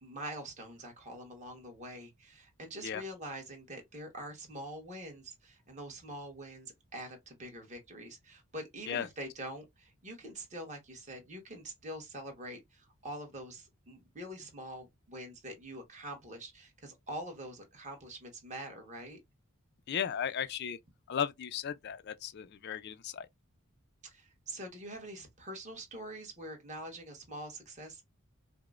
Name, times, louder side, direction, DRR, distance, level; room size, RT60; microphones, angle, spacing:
voice 1, 0.0-19.2 24.0-28.0, right 1 dB, 35° right, 1.2 m, -45 dB
voice 2, 19.9-20.8 21.1-23.3, left 8 dB, 50° left, 0.3 m, -35 dB
4.8 x 2.0 x 2.4 m
head